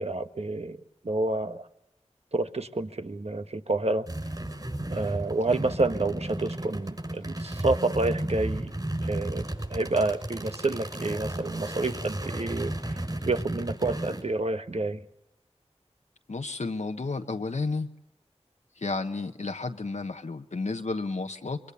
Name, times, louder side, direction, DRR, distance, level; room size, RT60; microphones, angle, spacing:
voice 1, 0.0-1.7 2.3-4.1 4.9-8.8 9.0-15.0, right 2 dB, 60° right, 9 dB, 1.3 m, -29 dB
sound 1, 4.1-14.2, right 1 dB, 35° right, 6.3 m, -34 dB
voice 2, 16.3-17.9 18.8-21.6, left 3 dB, 85° left, 5 dB, 1.1 m, -32 dB
24.5 x 23.5 x 6.9 m, 0.92 s
wide cardioid pair, 40°, 12 cm